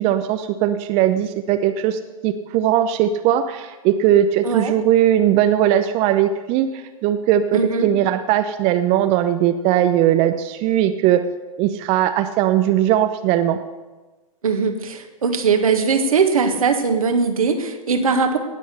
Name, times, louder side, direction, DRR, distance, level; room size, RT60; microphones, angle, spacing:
voice 1, 0.0-11.2 11.6-13.6, right 11 dB, 35° right, 8 dB, 0.7 m, -19 dB
voice 2, 4.4-4.7 7.5-7.9 14.4-18.4, right 5 dB, 75° right, 5 dB, 1.8 m, -20 dB
18.0 x 6.4 x 6.7 m, 1.2 s
figure-of-eight pair, 105°, 18 cm